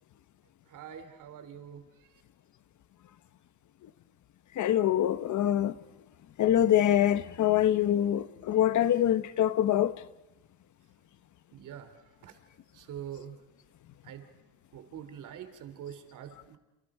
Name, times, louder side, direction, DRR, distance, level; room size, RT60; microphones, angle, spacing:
voice 1, 0.7-1.8 11.5-11.9 12.2-12.3 12.8-13.3 14.1-14.2 14.7-16.6, right 9 dB, 65° right, 3.0 m, -44 dB
voice 2, 4.6-5.7 6.4-9.9, left 11 dB, 60° left, 1.3 m, -24 dB
29.5 x 29.5 x 4.9 m
cardioid pair, 110°, 34 cm